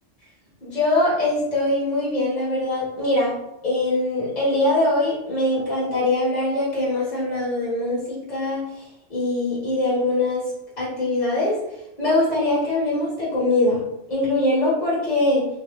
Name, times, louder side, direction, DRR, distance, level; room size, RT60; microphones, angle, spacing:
voice 1, 0.6-3.3 3.6-10.4 10.8-11.6 12.0-13.8 14.1-15.5, left 2 dB, 40° left, -8 dB, 1.6 m, -22 dB
3.8 x 2.9 x 3.1 m, 0.88 s
omnidirectional pair, 1.2 m